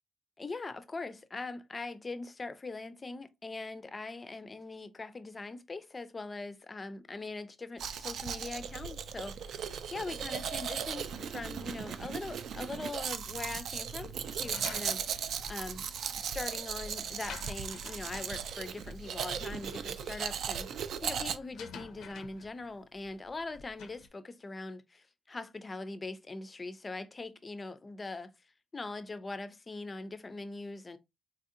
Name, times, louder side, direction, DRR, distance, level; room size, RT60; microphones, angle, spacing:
voice 1, 0.4-15.8 16.2-28.3 28.7-31.0, left 3 dB, 20° left, 0.4 m, -42 dB
Domestic sounds home sounds, 7.8-21.4, right 7 dB, 70° right, 0.3 m, -37 dB
sound 1, 14.4-24.1, left 6 dB, 90° left, 0.5 m, -51 dB
4.0 x 2.7 x 2.5 m
wide cardioid pair, 165°, 0 cm